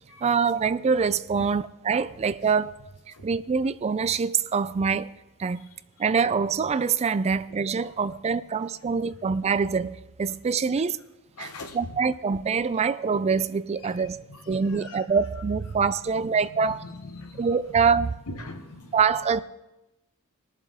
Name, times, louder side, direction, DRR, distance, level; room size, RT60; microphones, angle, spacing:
voice 1, 0.2-2.8 3.2-5.1 5.4-5.7 6.0-11.0 11.4-11.5 11.7-16.8 17.4-18.1 18.9-19.4, right 5 dB, 30° right, 0.3 m, -25 dB
voice 2, 5.6-6.1 7.3-7.4 7.8-7.9 8.3-8.4 8.8-8.9 11.3-12.7 13.8-15.0 15.3-15.4 15.7-17.8 18.3-19.2, left 2 dB, 85° left, 1.1 m, -44 dB
20.0 x 7.3 x 3.6 m
head